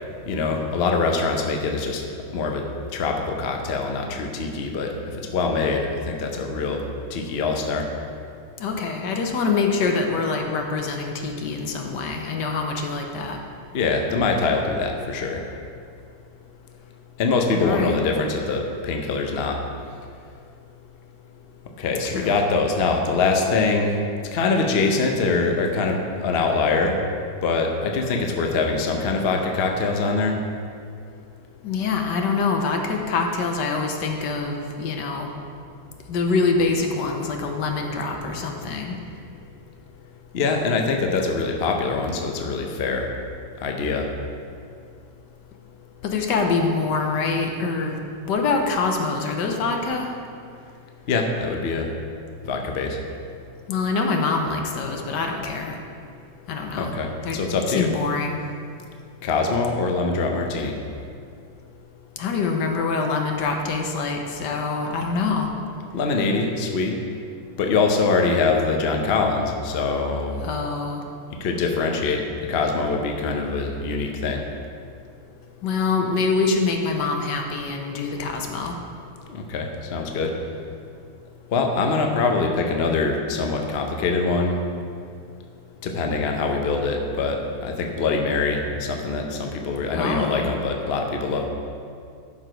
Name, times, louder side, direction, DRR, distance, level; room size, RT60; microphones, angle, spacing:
voice 1, 0.3-2.0 2.3-2.6 2.9-7.9 13.7-15.5 17.2-19.6 21.8-27.1 27.4-30.4 40.3-43.1 43.6-44.1 51.1-51.9 52.4-53.0 56.8-57.9 59.2-60.8 65.9-67.0 67.6-70.5 71.4-74.4 79.3-80.3 81.5-84.6 85.8-91.5, left 4 dB, 50° left, 2 dB, 0.8 m, -24 dB
voice 2, 8.6-13.4 17.5-18.0 22.0-22.3 31.6-35.3 36.1-38.9 46.0-48.0 48.3-50.1 53.7-55.8 56.5-56.9 57.2-57.4 57.7-58.4 62.2-65.5 70.4-71.0 75.6-78.7 89.9-90.5, left 4 dB, 75° left, 3 dB, 1.4 m, -25 dB
11.0 x 4.7 x 5.1 m, 2.3 s
omnidirectional pair, 1.9 m